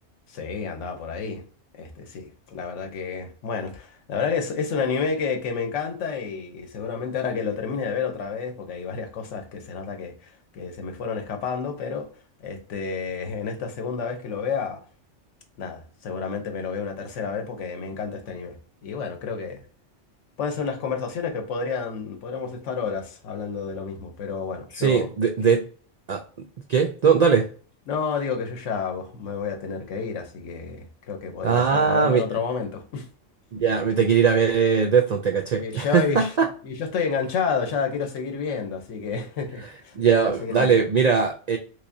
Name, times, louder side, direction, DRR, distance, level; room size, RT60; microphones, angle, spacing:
voice 1, 0.3-1.4 1.8-12.1 12.4-14.8 15.6-18.6 18.8-19.6 20.4-25.1 27.9-33.1 35.6-36.3 36.6-40.0 40.4-40.7, left 5 dB, 85° left, 1.1 m, -30 dB
voice 2, 24.7-25.6 26.1-26.2 26.7-27.5 31.4-32.2 33.6-36.5 39.9-41.6, right 6 dB, 70° right, 0.4 m, -20 dB
3.5 x 3.1 x 2.6 m
omnidirectional pair, 1.2 m